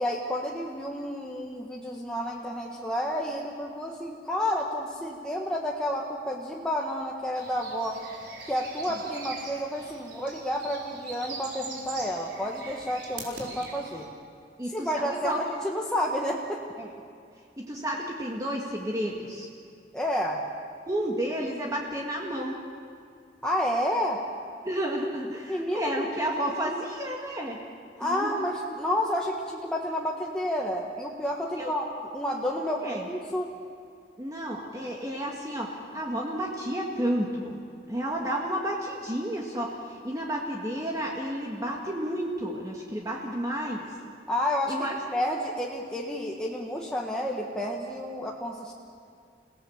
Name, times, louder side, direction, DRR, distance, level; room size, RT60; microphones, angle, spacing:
voice 1, 0.0-8.0 8.4-14.1 14.7-16.6 19.9-20.4 23.4-24.2 25.5-26.2 28.0-31.8 32.1-33.5 44.3-48.7, equal, 5° left, -2 dB, 1.4 m, -30 dB
sound 1, 7.4-14.1, right 3 dB, 75° right, 4.4 m, -42 dB
voice 2, 14.6-15.4 16.8-16.9 17.7-19.5 20.9-22.5 24.6-27.6 28.0-28.4 31.6-31.7 32.8-33.1 34.2-37.6 37.9-43.8 44.7-45.0, right 1 dB, 20° right, -2 dB, 1.8 m, -31 dB
29.0 x 17.5 x 7.2 m, 2.3 s
head